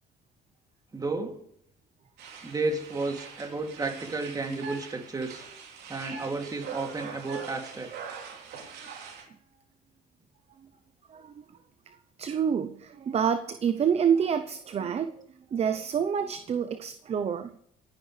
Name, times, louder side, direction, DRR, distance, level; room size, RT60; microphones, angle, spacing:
voice 1, 0.9-1.4 2.4-5.5 5.9-7.9, right 3 dB, 20° right, 3 dB, 2.8 m, -32 dB
sound 1, 2.2-9.2, right 6 dB, 70° right, 3.7 m, -42 dB
voice 2, 11.1-11.4 11.9-17.6, right 7 dB, 40° right, 10 dB, 0.8 m, -28 dB
27.0 x 10.5 x 3.4 m, 0.74 s
cardioid pair, 110°, 17 cm